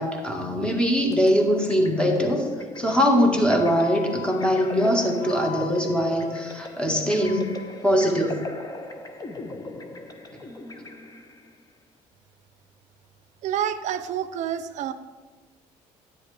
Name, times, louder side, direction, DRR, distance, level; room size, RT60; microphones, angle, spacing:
voice 1, 0.0-2.5 2.8-7.5 7.8-8.4, equal, 5° left, 2 dB, 1.7 m, -22 dB
sound 1, 1.1-11.5, left 2 dB, 25° left, 0.9 m, -38 dB
Wind instrument woodwind instrument, 3.5-7.7, left 9 dB, 80° left, 1.6 m, -42 dB
voice 2, 13.4-14.9, right 9 dB, 60° right, 11 dB, 0.5 m, -28 dB
10.0 x 9.0 x 3.4 m, 1.3 s
cardioid pair, 100°, 14 cm